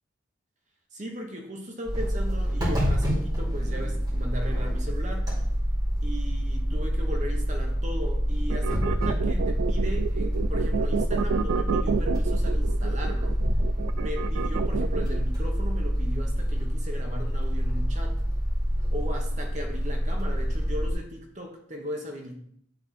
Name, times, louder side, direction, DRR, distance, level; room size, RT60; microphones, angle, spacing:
voice 1, 0.9-5.3 6.0-13.4 13.9-18.2 18.9-22.4, equal, 35° right, 2 dB, 1.0 m, -37 dB
sound 1, 1.9-20.9, equal, 20° right, 2.4 m, -27 dB
sound 2, 8.5-15.2, right 6 dB, 90° right, 0.3 m, -30 dB
9.6 x 3.5 x 4.2 m, 0.67 s
head